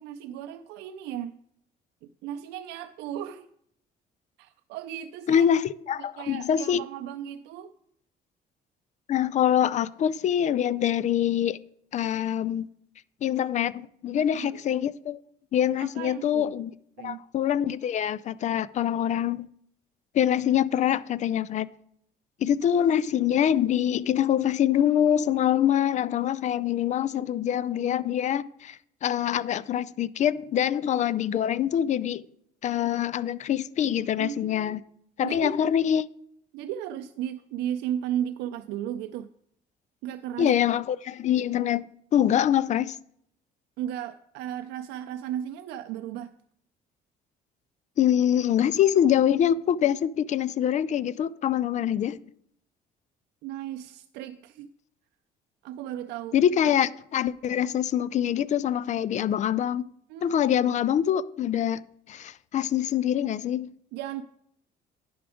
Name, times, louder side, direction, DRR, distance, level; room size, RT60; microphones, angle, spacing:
voice 1, 0.0-1.4 2.0-3.5 4.4-5.4 6.0-7.7 14.1-14.6 15.8-16.5 17.0-17.2 34.2-34.8 35.2-35.6 36.5-39.3 40.0-40.6 43.8-46.3 53.4-54.7 55.6-56.4 57.7-57.8 60.1-60.4 63.9-64.2, right 10 dB, 90° right, 0.4 m, -35 dB
voice 2, 5.3-6.8 9.1-11.6 11.9-12.6 13.2-15.2 15.5-16.7 17.0-19.5 20.1-21.7 22.4-32.2 32.6-34.8 35.2-36.1 40.4-43.0 48.0-52.2 56.3-59.9 60.2-61.8 62.1-63.7, left 10 dB, 45° left, 0.4 m, -25 dB
10.0 x 6.0 x 4.9 m
cardioid pair, 110°, 17 cm